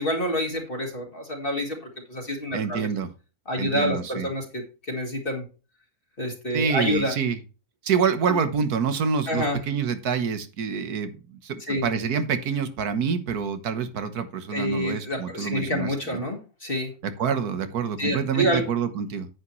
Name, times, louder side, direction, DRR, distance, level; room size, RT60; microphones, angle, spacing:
voice 1, 0.0-1.8 2.1-2.9 3.5-5.4 6.2-7.1 9.3-9.6 11.7-11.9 14.5-16.9 18.0-18.6, equal, 35° left, 0 dB, 2.2 m, -27 dB
voice 2, 2.5-3.1 3.6-4.3 6.5-7.4 7.8-16.3 17.0-19.3, right 6 dB, 85° right, 10 dB, 1.7 m, -27 dB
9.6 x 8.5 x 3.1 m, 0.33 s
omnidirectional pair, 1.6 m